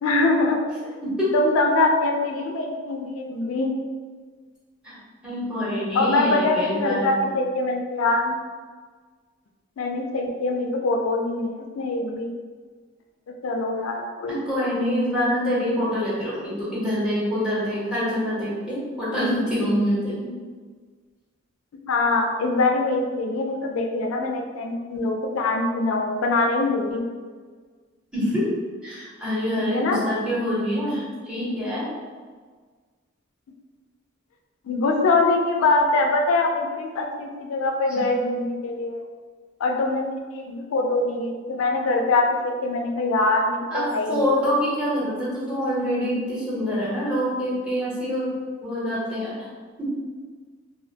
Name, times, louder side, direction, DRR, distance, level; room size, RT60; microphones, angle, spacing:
voice 1, 0.0-0.9 1.3-3.7 5.9-8.3 9.8-12.3 13.4-14.4 21.9-27.0 29.6-30.0 34.6-39.0 39.6-42.3 42.6-44.3, left 2 dB, 85° left, 2 dB, 0.4 m, -23 dB
voice 2, 1.0-1.3 4.8-5.0 5.2-7.1 14.3-20.3 28.1-28.5 28.8-31.9 37.9-38.0 43.7-43.8 44.1-48.3 48.6-49.4 49.8-49.9, equal, 5° right, -8 dB, 0.8 m, -25 dB
2.5 x 2.1 x 2.6 m, 1.5 s
head